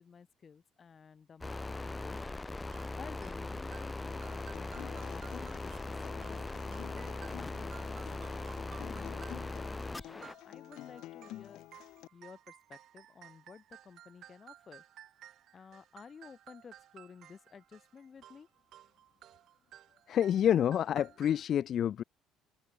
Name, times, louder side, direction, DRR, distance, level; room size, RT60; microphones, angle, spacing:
voice 1, 0.0-2.2 2.7-11.7 12.1-14.8 15.5-18.5, left 6 dB, 35° left, 5.0 m, -53 dB
sound 1, 1.4-10.3, left 2 dB, 15° left, 2.0 m, -40 dB
sound 2, 2.4-21.4, right 12 dB, 65° right, 3.2 m, -57 dB
Acoustic guitar, 4.1-12.1, left 15 dB, 75° left, 6.7 m, -50 dB
voice 2, 20.1-22.0, left 10 dB, 55° left, 0.8 m, -28 dB
open air
supercardioid pair, 90°, 0 cm